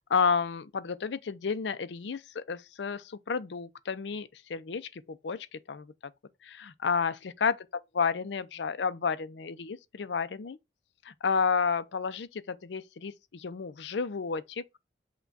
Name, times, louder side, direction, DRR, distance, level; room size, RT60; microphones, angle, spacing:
voice 1, 0.1-5.9 6.4-10.6 11.0-14.6, left 5 dB, 70° left, 0.5 m, -31 dB
5.8 x 2.3 x 3.9 m
head